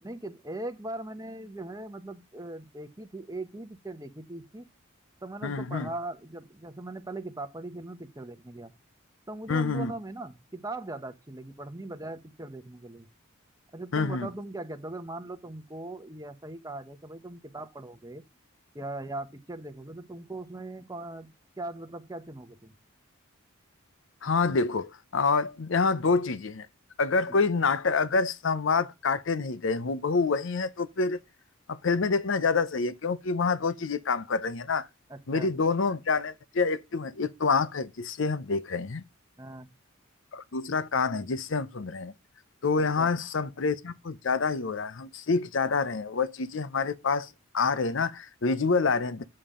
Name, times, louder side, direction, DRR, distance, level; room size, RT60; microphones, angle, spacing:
voice 1, 0.0-4.6 5.2-8.7 9.3-13.1 13.7-18.2 18.7-22.8 27.3-27.4 35.1-35.5 39.4-39.7 42.7-43.1, right 2 dB, 15° right, 0.9 m, -40 dB
voice 2, 5.4-5.9 9.5-9.9 13.9-14.3 24.2-26.7 27.0-31.2 31.7-34.9 35.3-39.0 40.3-42.1 42.6-49.2, left 4 dB, 60° left, 0.6 m, -27 dB
8.6 x 7.3 x 3.7 m
head